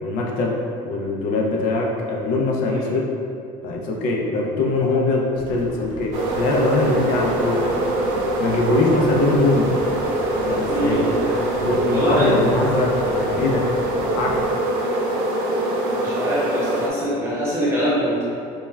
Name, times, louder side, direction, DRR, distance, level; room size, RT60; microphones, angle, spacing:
voice 1, 0.0-3.1 3.6-7.8 8.4-9.8 10.5-11.0 11.4-13.7 14.2-14.4, left 2 dB, 60° left, -1 dB, 0.4 m, -22 dB
sound 1, 5.3-14.5, equal, 30° left, 0.8 m, -39 dB
sound 2, 6.1-16.9, right 1 dB, 85° right, 0.5 m, -23 dB
voice 2, 10.6-11.4 11.9-12.3 15.9-18.2, equal, 15° right, -9 dB, 0.8 m, -24 dB
2.2 x 2.1 x 3.2 m, 2.5 s
cardioid pair, 150°, 16 cm